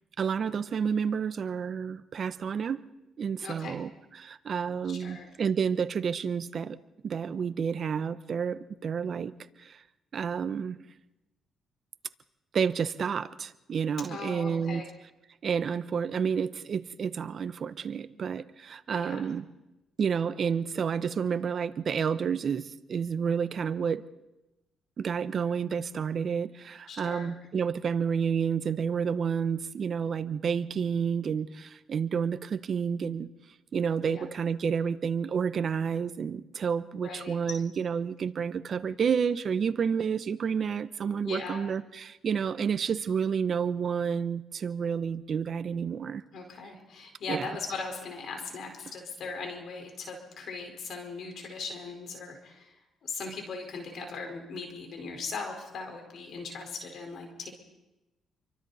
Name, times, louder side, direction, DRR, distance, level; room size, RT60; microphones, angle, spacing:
voice 1, 0.2-2.8 3.2-6.8 7.0-9.3 9.6-9.8 10.1-10.8 12.5-14.8 15.4-19.5 20.0-24.0 25.0-33.3 33.7-46.2 47.3-47.5, right 6 dB, 50° right, 13 dB, 1.0 m, -30 dB
voice 2, 3.4-3.8 4.9-5.3 14.0-14.9 18.9-19.2 26.9-27.3 34.1-34.2 36.9-37.6 41.2-41.7 46.3-52.7 53.0-57.5, left 4 dB, 65° left, 3 dB, 4.7 m, -39 dB
29.5 x 24.0 x 4.2 m, 0.97 s
cardioid pair, 90°, 0 cm